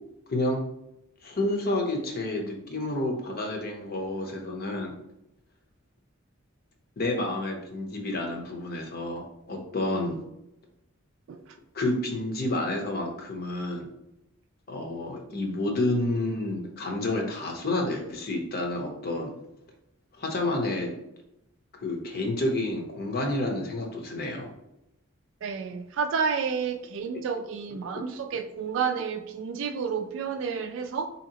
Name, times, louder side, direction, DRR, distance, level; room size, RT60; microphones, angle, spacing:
voice 1, 1.2-4.9 7.0-10.2 11.7-13.9 14.7-19.3 20.2-20.9 21.8-24.5, left 2 dB, 50° left, 0.7 m, -29 dB
voice 2, 25.4-31.1, right 6 dB, 65° right, 0.3 m, -30 dB
4.0 x 2.8 x 2.8 m
head